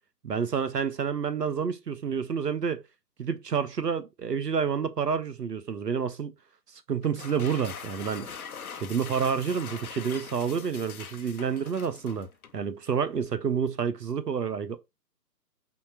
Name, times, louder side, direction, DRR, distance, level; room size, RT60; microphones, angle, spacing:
voice 1, 0.2-2.8 3.2-6.3 6.7-8.3 8.7-12.3 12.5-14.8, right 6 dB, 70° right, 0.9 m, -29 dB
sound 1, 7.0-12.6, left 6 dB, 60° left, 0.8 m, -42 dB
4.3 x 4.2 x 5.6 m
figure-of-eight pair, 140°, 50 cm